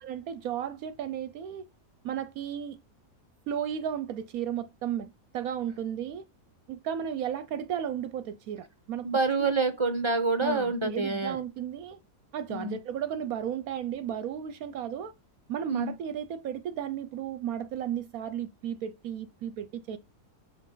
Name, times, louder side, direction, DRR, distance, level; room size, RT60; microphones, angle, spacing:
voice 1, 0.0-1.6 2.0-2.8 3.5-6.2 6.7-9.1 9.4-9.5 10.4-12.0 12.3-15.1 15.5-20.0, right 9 dB, 70° right, 1.0 m, -34 dB
voice 2, 9.0-11.4 12.5-12.8 15.7-15.9, right 3 dB, 30° right, 0.6 m, -27 dB
6.4 x 5.2 x 3.8 m
omnidirectional pair, 1.7 m